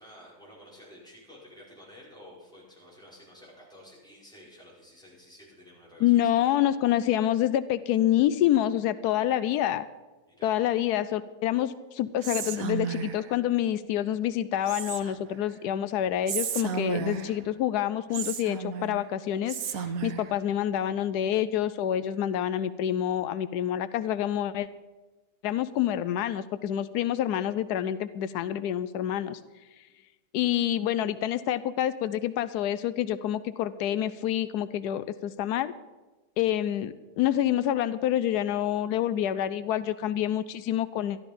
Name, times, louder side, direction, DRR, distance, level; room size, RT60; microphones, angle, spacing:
voice 1, 0.0-6.4 10.3-10.6, left 1 dB, ahead, -6 dB, 5.2 m, -51 dB
voice 2, 6.0-9.9 10.4-19.6 20.0-24.7 25.4-29.4 30.3-35.7 36.4-41.2, left 11 dB, 90° left, 14 dB, 1.1 m, -27 dB
Whispering, 12.2-13.3 14.7-15.3 16.3-17.4 18.1-19.0 19.5-20.3, right 6 dB, 65° right, 1.2 m, -33 dB
13.0 x 12.5 x 5.2 m, 1.2 s
omnidirectional pair, 1.7 m